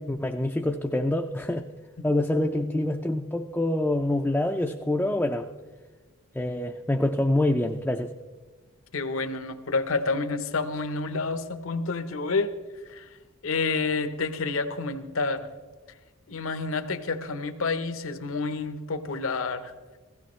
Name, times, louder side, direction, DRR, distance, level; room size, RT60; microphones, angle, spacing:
voice 1, 0.0-1.6 2.0-5.5 6.3-8.1, left 1 dB, 5° left, 2 dB, 0.4 m, -26 dB
voice 2, 8.9-12.5 12.9-13.1 13.4-15.5 16.3-19.7, left 3 dB, 70° left, 10 dB, 0.8 m, -29 dB
16.5 x 15.0 x 3.1 m, 1.3 s
head